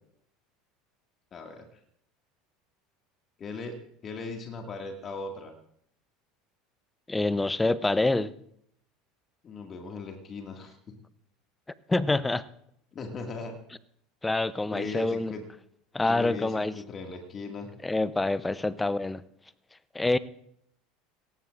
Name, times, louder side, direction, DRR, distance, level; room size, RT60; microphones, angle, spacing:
voice 1, 1.3-1.7 3.4-3.8 4.0-5.5 9.4-10.8 12.9-13.5 14.7-15.4 16.0-17.7, left 3 dB, 35° left, 3 dB, 2.0 m, -38 dB
voice 2, 7.1-8.3 11.9-12.4 14.2-15.3 15.9-16.7 17.8-19.2 19.9-20.2, left 2 dB, 10° left, 18 dB, 0.7 m, -26 dB
21.5 x 18.0 x 2.5 m, 0.70 s
figure-of-eight pair, 70°, 0 cm